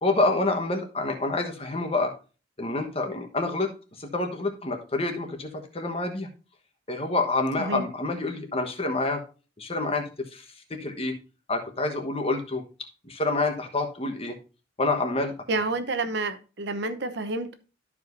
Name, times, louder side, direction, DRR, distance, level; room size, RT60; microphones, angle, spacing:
voice 1, 0.0-2.1 2.6-3.7 4.0-6.3 6.9-9.2 9.6-10.4 10.7-11.1 11.5-12.6 13.0-14.4 14.8-15.3, left 2 dB, 30° left, 1.2 m, -27 dB
voice 2, 15.5-17.5, right 2 dB, 65° right, 0.8 m, -29 dB
13.0 x 4.9 x 2.6 m
head